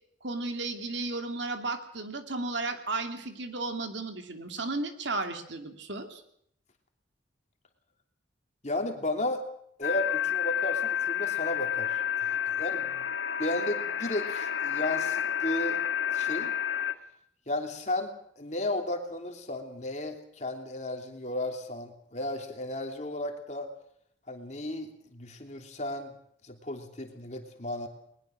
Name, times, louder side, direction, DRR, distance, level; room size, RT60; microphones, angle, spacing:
voice 1, 0.2-6.2, right 3 dB, 70° right, 6 dB, 2.7 m, -34 dB
voice 2, 8.6-9.4 9.8-13.0 13.4-15.8 16.1-16.5 17.5-23.7 24.3-26.1 26.4-27.9, left 1 dB, 35° left, 4 dB, 3.0 m, -34 dB
sound 1, 9.8-16.9, left 10 dB, 75° left, 1.5 m, -30 dB
21.0 x 21.0 x 6.5 m, 0.69 s
head